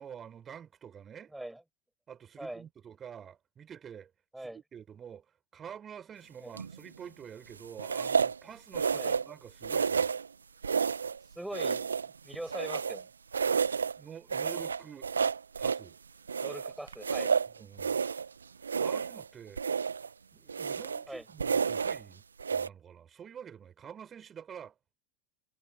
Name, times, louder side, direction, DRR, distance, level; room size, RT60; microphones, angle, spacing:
voice 1, 0.0-1.3 2.1-4.1 4.4-5.2 5.5-10.1 14.0-15.1 15.6-16.0 17.6-18.0 18.8-19.6 20.3-22.2 22.5-24.7, right 8 dB, 30° right, 7.5 m, -48 dB
voice 2, 1.3-1.6 2.4-2.7 4.3-4.6 6.4-6.5 8.9-9.2 11.3-13.1 16.4-17.4 21.1-21.3, right 1 dB, 5° right, 6.9 m, -42 dB
sound 1, 6.6-6.9 7.8-8.4 8.7-9.3 9.6-10.3 10.6-11.2 11.5-13.0 13.3-14.0 14.3-15.9 16.3-18.3 18.6-19.3 19.6-20.1 20.5-21.1 21.4-22.0 22.4-22.7, right 6 dB, 80° right, 1.9 m, -30 dB
figure-of-eight pair, 85°, 0 cm